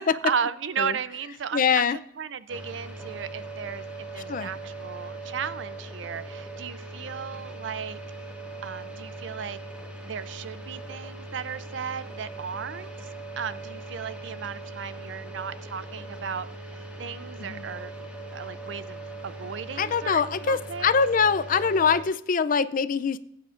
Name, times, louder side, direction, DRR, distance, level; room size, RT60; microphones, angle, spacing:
voice 1, 0.2-8.0 8.6-9.6 10.0-12.9 13.4-20.9, right 7 dB, 70° right, 15 dB, 0.5 m, -35 dB
voice 2, 1.5-2.0 4.3-4.5 17.4-17.6 19.8-23.2, left 6 dB, 45° left, 15 dB, 0.5 m, -23 dB
sound 1, 2.5-22.0, right 2 dB, 5° right, 1.8 m, -40 dB
16.5 x 9.3 x 2.5 m, 0.75 s
head